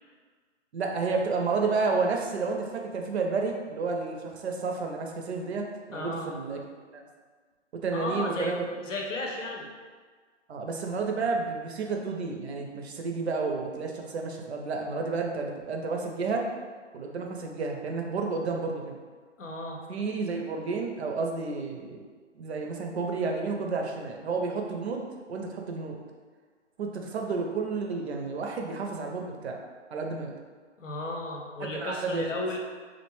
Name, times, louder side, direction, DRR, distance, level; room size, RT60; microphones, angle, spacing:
voice 1, 0.7-6.6 6.9-7.1 7.8-8.6 10.5-16.5 16.9-19.0 19.9-22.0 22.3-26.0 26.8-29.6 29.9-30.3 31.6-32.4, right 4 dB, 60° right, 1 dB, 0.5 m, -31 dB
voice 2, 5.9-6.3 7.9-9.7 19.4-19.8 30.8-32.6, left 2 dB, 85° left, 0 dB, 0.7 m, -34 dB
2.5 x 2.1 x 3.0 m, 1.5 s
hypercardioid pair, 145°, 37 cm